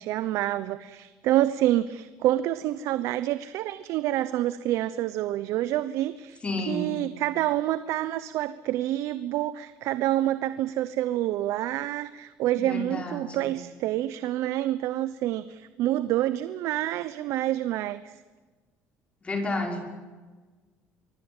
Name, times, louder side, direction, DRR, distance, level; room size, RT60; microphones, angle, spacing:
voice 1, 0.0-18.1, right 14 dB, 70° right, 14 dB, 0.9 m, -27 dB
voice 2, 6.4-6.9 12.6-13.5 19.2-19.8, left 2 dB, 25° left, 3 dB, 5.7 m, -31 dB
24.0 x 23.5 x 9.1 m, 1.3 s
cardioid pair, 130°, 5 cm